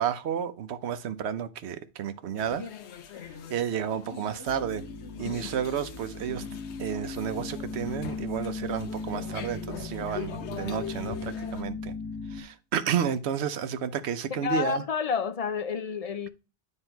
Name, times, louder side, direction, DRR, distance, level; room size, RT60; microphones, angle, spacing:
voice 1, 0.0-2.7 3.5-4.8 5.2-6.4 6.8-11.9 12.3-14.8, right 8 dB, 80° right, 1.0 m, -31 dB
sound 1, 2.4-11.6, left 8 dB, 85° left, 1.0 m, -42 dB
sound 2, 4.5-12.4, left 3 dB, 5° right, 1.6 m, -38 dB
voice 2, 14.3-16.3, left 5 dB, 50° left, 0.5 m, -29 dB
9.8 x 3.3 x 4.4 m
omnidirectional pair, 1.1 m